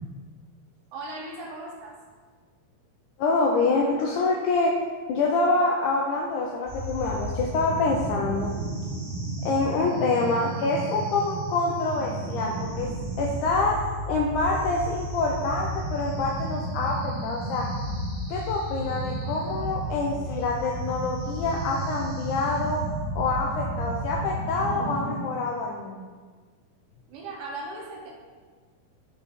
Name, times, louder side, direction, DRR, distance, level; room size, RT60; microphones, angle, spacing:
voice 1, 0.9-2.0 27.1-28.1, right 2 dB, 75° right, 0 dB, 2.5 m, -37 dB
voice 2, 3.2-4.7 5.1-8.5 9.5-12.9 13.2-13.7 14.1-17.0 17.2-17.7 18.3-22.8 23.2-26.1, left 3 dB, 85° left, -1 dB, 1.7 m, -26 dB
sound 1, 6.7-25.2, right 1 dB, 55° right, 1.0 m, -32 dB
6.8 x 4.3 x 4.1 m, 1.5 s
omnidirectional pair, 4.1 m